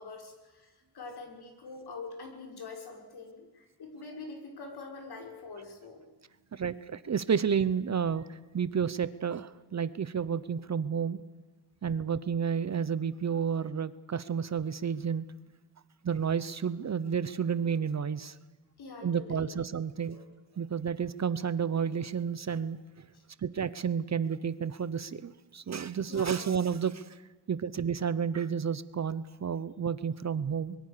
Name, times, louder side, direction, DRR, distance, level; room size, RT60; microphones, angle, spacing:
voice 1, 0.0-6.3 18.8-19.6 20.1-20.3 23.1-23.2 26.1-26.6, left 3 dB, 60° left, 3 dB, 6.2 m, -45 dB
voice 2, 6.5-11.2 11.8-15.3 16.0-18.4 19.0-20.2 20.6-23.1 23.4-27.2 27.5-30.8, right 7 dB, 40° right, 16 dB, 0.9 m, -31 dB
24.5 x 22.5 x 6.8 m, 1.2 s
cardioid pair, 120°, 44 cm